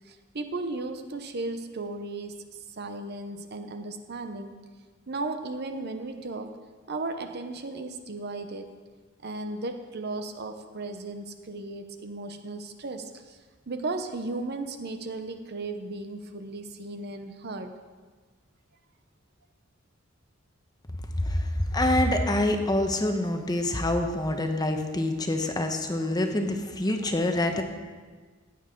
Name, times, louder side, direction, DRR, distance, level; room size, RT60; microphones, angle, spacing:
voice 1, 0.1-2.4 2.8-4.6 5.1-6.5 6.9-8.8 9.2-13.4 13.7-17.8, right 2 dB, 55° right, 7 dB, 0.8 m, -35 dB
voice 2, 21.2-27.6, left 1 dB, 20° left, 4 dB, 0.9 m, -26 dB
15.5 x 9.1 x 3.8 m, 1.4 s
head